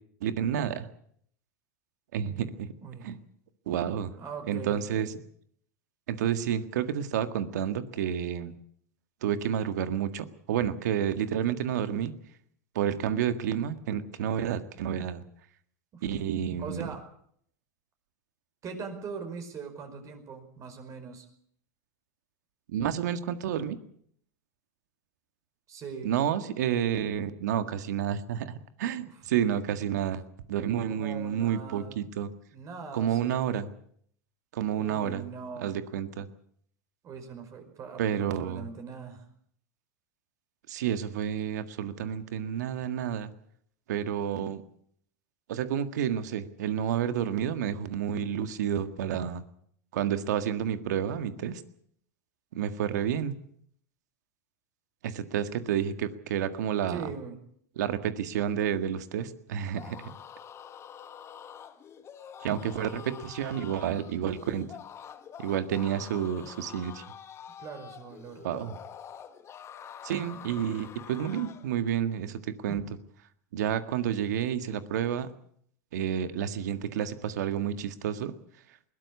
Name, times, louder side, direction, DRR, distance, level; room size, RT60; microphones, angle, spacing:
voice 1, 0.2-0.9 2.1-2.7 3.0-3.2 3.7-4.1 4.5-5.1 6.1-8.5 9.2-12.1 12.8-15.2 16.0-16.9 22.7-23.8 26.0-30.2 30.5-32.3 32.9-33.7 34.5-35.2 35.6-36.3 38.0-38.6 40.7-43.3 43.9-44.6 45.5-49.4 49.9-51.6 52.5-53.4 55.0-57.1 57.8-60.1 62.4-64.7 65.4-67.0 68.4-68.8 70.0-72.8 73.5-75.3 75.9-78.3, right 9 dB, 75° right, 10 dB, 1.8 m, -30 dB
voice 2, 2.8-3.2 4.2-5.2 15.9-16.0 16.6-17.0 18.6-21.2 25.7-26.1 29.1-29.2 30.9-32.0 32.5-33.6 34.7-35.7 37.0-39.2 56.9-57.4 67.6-68.4 72.7-72.8, right 5 dB, 35° right, 6 dB, 5.1 m, -41 dB
sound 1, 59.6-71.7, left 8 dB, 30° left, 1.8 m, -46 dB
21.0 x 17.0 x 8.4 m, 0.66 s
hypercardioid pair, 110°, 9 cm